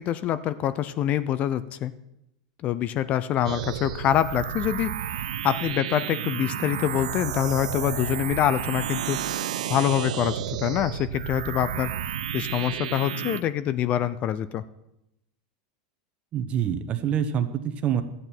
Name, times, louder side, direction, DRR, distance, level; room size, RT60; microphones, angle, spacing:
voice 1, 0.0-1.9 2.6-9.2 9.7-11.9 12.3-14.6, left 11 dB, 40° left, 15 dB, 0.5 m, -25 dB
sound 1, 3.4-13.4, right 10 dB, 90° right, 0.5 m, -31 dB
voice 2, 16.3-18.0, right 9 dB, 35° right, 9 dB, 0.9 m, -26 dB
12.5 x 8.6 x 4.5 m, 0.86 s
supercardioid pair, 125°, 4 cm